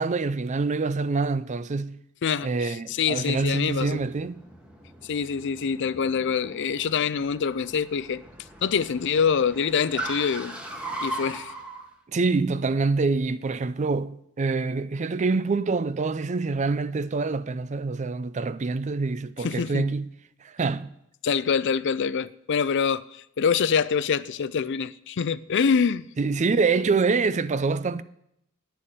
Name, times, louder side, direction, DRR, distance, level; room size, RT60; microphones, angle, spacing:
voice 1, 0.0-2.0 2.4-4.4 12.1-20.1 20.4-20.9 26.2-28.0, right 4 dB, 35° right, 0.4 m, -26 dB
voice 2, 2.2-4.0 5.0-8.2 8.6-10.6 11.0-11.5 19.4-19.9 21.2-26.1, left 6 dB, 55° left, 0.4 m, -25 dB
Car, 2.9-11.8, right 1 dB, 5° right, 1.3 m, -39 dB
9.3 x 6.9 x 8.7 m
head